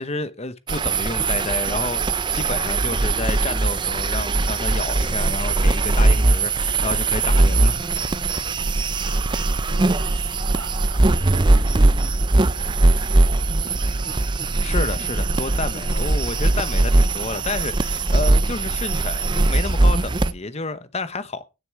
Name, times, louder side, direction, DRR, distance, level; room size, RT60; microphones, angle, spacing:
voice 1, 0.0-7.7 14.6-21.4, left 3 dB, 30° left, 0.9 m, -30 dB
sound 1, 0.7-20.3, right 2 dB, 20° right, 0.5 m, -20 dB
voice 2, 9.0-12.2 12.5-14.3, right 3 dB, 65° right, 3.1 m, -45 dB
16.5 x 6.8 x 4.6 m
head